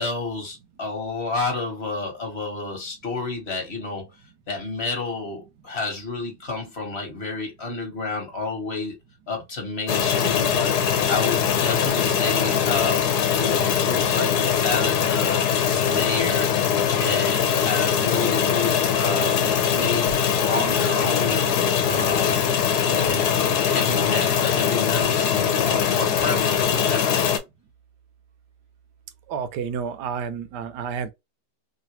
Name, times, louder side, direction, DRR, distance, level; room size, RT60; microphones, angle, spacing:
voice 1, 0.0-4.1 4.5-9.0 9.3-13.0 13.3-15.4 15.6-16.5 17.0-20.2 20.5-22.4 22.8-23.2 23.6-27.2, left 3 dB, 40° left, 1.2 m, -30 dB
sound 1, 9.9-27.4, left 8 dB, 70° left, 1.1 m, -22 dB
voice 2, 29.3-31.1, right 6 dB, 75° right, 1.2 m, -30 dB
3.2 x 2.4 x 2.8 m
omnidirectional pair, 1.9 m